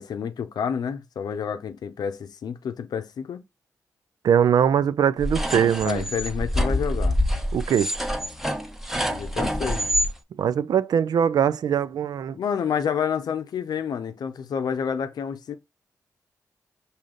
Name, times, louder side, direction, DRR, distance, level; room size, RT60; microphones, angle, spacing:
voice 1, 0.0-3.4 5.8-7.2 9.1-9.9 12.3-15.6, left 7 dB, 75° left, 0.6 m, -29 dB
voice 2, 4.2-6.0 7.5-7.9 10.4-12.4, right 8 dB, 70° right, 0.3 m, -21 dB
sound 1, 5.2-10.1, equal, 5° right, 0.9 m, -26 dB
4.9 x 2.7 x 3.8 m
supercardioid pair, 45°, 7 cm